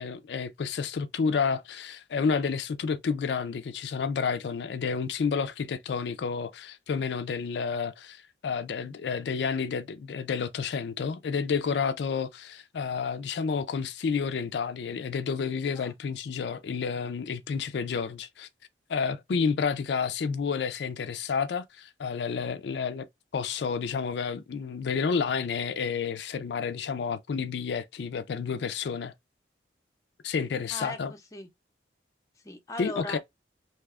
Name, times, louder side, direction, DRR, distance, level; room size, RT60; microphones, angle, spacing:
voice 1, 0.0-18.5 18.9-23.1 23.3-29.1 30.2-31.1 32.8-33.2, left 5 dB, 75° left, 0.4 m, -30 dB
voice 2, 30.7-31.5 32.4-33.2, left 2 dB, 20° left, 0.6 m, -38 dB
2.8 x 2.2 x 3.4 m
head